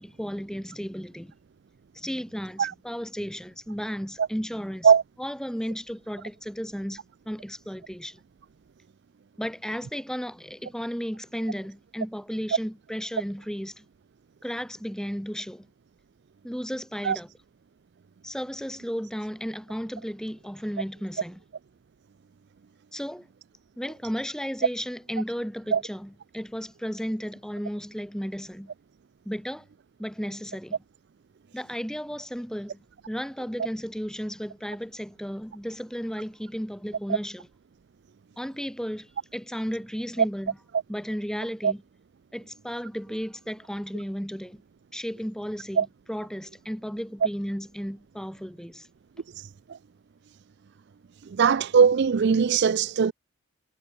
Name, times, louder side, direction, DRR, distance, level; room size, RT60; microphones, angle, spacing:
voice 1, 0.0-1.3 1.9-4.9 5.2-8.2 9.4-13.9 14.4-15.7 16.4-17.3 18.2-21.4 22.9-23.3 23.8-28.7 29.3-29.7 30.0-30.8 31.5-37.5 38.4-40.6 40.9-41.8 42.3-44.6 44.9-48.9, equal, 5° left, 3.7 m, -34 dB
voice 2, 49.4-49.8 51.3-53.1, right 6 dB, 55° right, 0.4 m, -20 dB
head